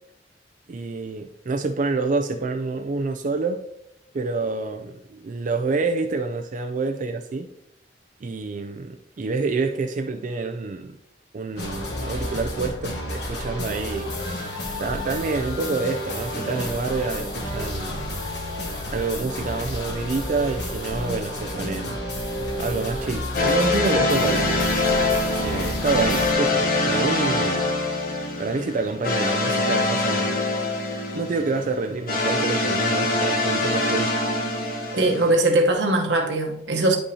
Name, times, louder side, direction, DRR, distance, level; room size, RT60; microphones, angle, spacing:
voice 1, 0.7-3.6 4.1-7.5 8.2-11.0 11.3-14.1 14.8-18.0 18.9-22.0 22.6-24.5 25.4-27.7 28.4-30.4 31.1-34.2, right 3 dB, 45° right, 0.4 m, -27 dB
sound 1, 11.6-26.3, left 1 dB, 70° left, 1.3 m, -31 dB
sound 2, 16.3-17.5 23.3-35.3, left 2 dB, 55° left, 1.2 m, -24 dB
voice 2, 34.9-37.0, right 2 dB, 90° right, 1.1 m, -20 dB
9.9 x 5.3 x 2.8 m
head